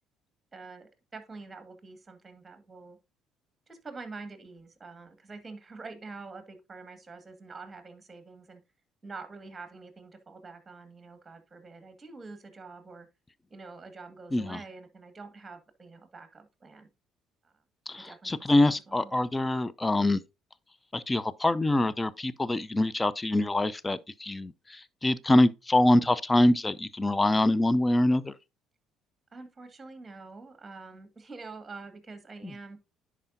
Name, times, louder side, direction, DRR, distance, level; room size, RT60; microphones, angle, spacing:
voice 1, 0.5-3.0 3.7-8.6 9.0-13.1 13.5-16.9 17.4-17.5 18.0-19.2 29.3-32.8, right 3 dB, 25° right, 1.9 m, -46 dB
voice 2, 17.9-20.2 20.9-28.3, left 1 dB, 20° left, 0.6 m, -25 dB
10.5 x 4.9 x 2.7 m
supercardioid pair, 65°, 0 cm